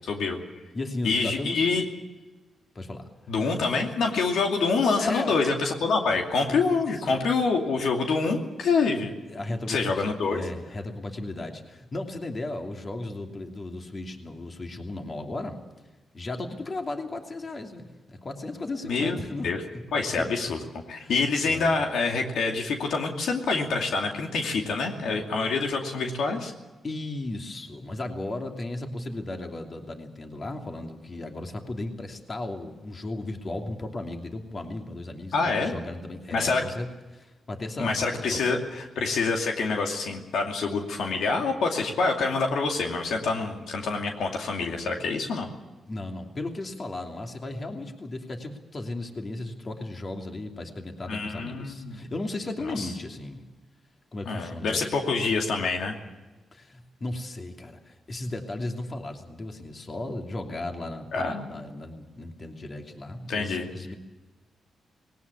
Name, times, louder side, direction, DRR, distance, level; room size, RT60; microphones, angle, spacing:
voice 1, 0.0-0.4 1.0-1.8 3.3-9.1 9.5-10.4 18.8-19.2 19.4-19.6 19.9-20.6 20.9-26.5 35.3-35.7 36.3-36.6 37.8-45.5 51.1-52.0 52.6-52.9 54.3-55.9 61.1-61.4 63.3-63.7, left 4 dB, 80° left, 2 dB, 2.5 m, -26 dB
voice 2, 0.7-1.8 2.7-3.1 5.0-5.4 6.4-6.9 9.3-15.6 16.1-19.5 20.1-20.5 21.0-21.2 21.5-21.7 26.8-38.6 45.9-53.4 54.1-55.0 56.5-63.9, left 2 dB, 35° left, 3 dB, 2.8 m, -35 dB
19.5 x 18.0 x 8.5 m, 1.2 s
cardioid pair, 85°, 0 cm